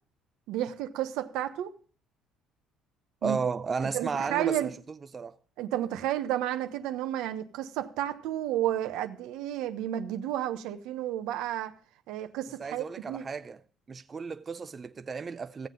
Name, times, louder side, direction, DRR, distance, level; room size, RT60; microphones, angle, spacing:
voice 1, 0.5-1.7 3.2-3.4 3.9-4.7 5.6-11.7 12.1-13.2, right 12 dB, 80° right, 0.9 m, -31 dB
voice 2, 3.2-4.8 5.1-5.4 12.6-13.6 13.9-15.7, right 5 dB, 30° right, 0.5 m, -33 dB
15.0 x 7.6 x 3.8 m
cardioid pair, 110°, 0 cm